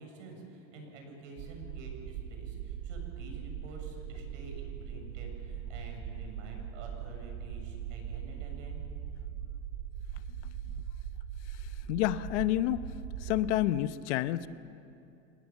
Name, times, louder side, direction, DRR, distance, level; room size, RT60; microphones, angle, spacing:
voice 1, 0.0-8.8, right 2 dB, 85° right, 3 dB, 7.0 m, -48 dB
sound 1, 1.4-13.5, right 9 dB, 60° right, 3.1 m, -40 dB
voice 2, 11.5-12.9 13.2-14.5, left 14 dB, 70° left, 13 dB, 1.0 m, -30 dB
28.5 x 19.0 x 7.3 m, 2.8 s
supercardioid pair, 150°, 36 cm